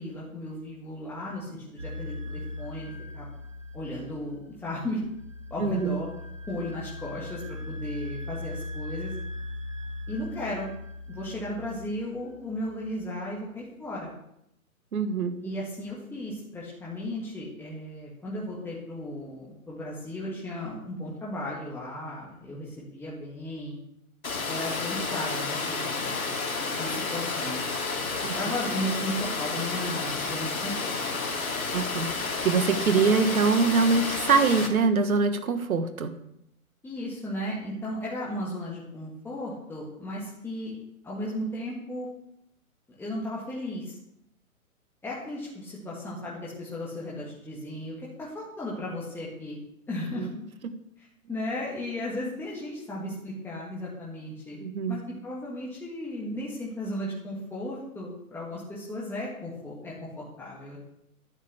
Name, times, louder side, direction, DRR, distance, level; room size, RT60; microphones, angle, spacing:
voice 1, 0.0-3.3 3.7-5.0 5.5-6.1 6.5-9.1 10.1-10.7 11.1-14.1 15.4-23.8 24.5-26.2 26.8-27.6 28.3-30.9 36.8-40.8 41.0-42.1 43.0-44.0 45.0-49.6 49.9-50.3 51.0-54.6 54.9-60.8, left 1 dB, 5° left, -6 dB, 1.7 m, -35 dB
sound 1, 1.8-13.0, left 2 dB, 25° right, 0.3 m, -39 dB
voice 2, 5.6-6.0 14.9-15.5 28.2-28.3 31.7-32.1 32.4-36.1 50.2-50.3 54.6-55.0, right 4 dB, 70° right, 10 dB, 1.4 m, -24 dB
Water, 24.2-34.7, left 4 dB, 70° left, 2.7 m, -31 dB
11.5 x 5.3 x 8.3 m, 0.77 s
figure-of-eight pair, 130°, 44 cm